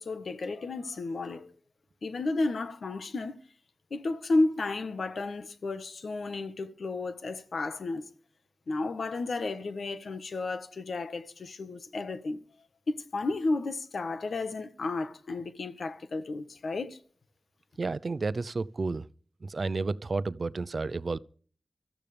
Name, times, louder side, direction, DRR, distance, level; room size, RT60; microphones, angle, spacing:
voice 1, 0.0-1.5 2.0-3.4 3.9-8.0 8.7-12.4 12.9-17.0, left 3 dB, 80° left, 1.4 m, -32 dB
voice 2, 17.8-19.1 19.4-21.2, right 3 dB, 55° right, 0.6 m, -31 dB
24.5 x 14.0 x 3.4 m
wide cardioid pair, 75°, 0 cm